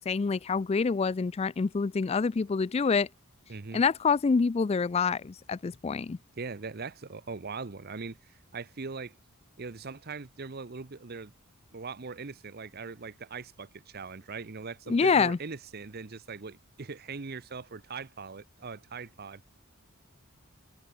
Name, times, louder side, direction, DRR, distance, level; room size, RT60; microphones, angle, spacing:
voice 1, 0.0-3.1 3.7-6.2 14.9-15.4, left 5 dB, 30° left, 0.3 m, -26 dB
voice 2, 3.5-3.8 6.4-9.1 9.6-11.3 11.7-19.4, right 4 dB, 45° right, 0.8 m, -41 dB
head